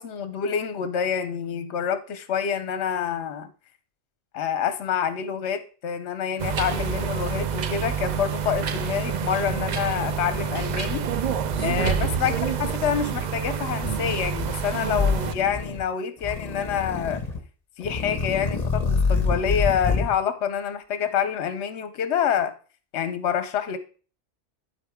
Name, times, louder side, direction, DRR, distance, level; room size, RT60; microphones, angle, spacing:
voice 1, 0.0-3.5 4.3-11.1 11.6-17.2 17.8-22.5 22.9-23.8, left 8 dB, 65° left, 12 dB, 1.0 m, -27 dB
sound 1, 6.4-15.3, right 7 dB, 65° right, 0.4 m, -28 dB
sound 2, 7.0-8.1 8.5-8.9 9.4-9.9 10.3-11.9 12.2-12.7 13.8-14.5 14.9-15.8 16.2-17.4 17.8-20.1, left 4 dB, 35° left, 1.0 m, -28 dB
12.0 x 4.2 x 3.5 m, 0.39 s
omnidirectional pair, 1.3 m